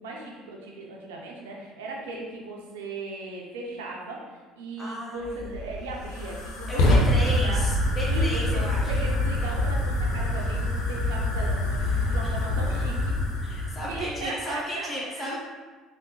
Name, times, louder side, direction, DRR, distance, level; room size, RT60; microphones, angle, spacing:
voice 1, 0.0-4.2 4.6-7.6 8.1-13.1 13.9-14.9 15.2-15.3, right 3 dB, 80° right, -1 dB, 0.5 m, -37 dB
voice 2, 4.8-5.5 6.7-9.0 12.2-12.3 13.4-15.4, equal, 20° left, -6 dB, 1.2 m, -34 dB
Fire, 5.2-14.2, left 1 dB, 70° left, 0.5 m, -25 dB
3.4 x 2.0 x 3.0 m, 1.3 s
hypercardioid pair, 65°, 0 cm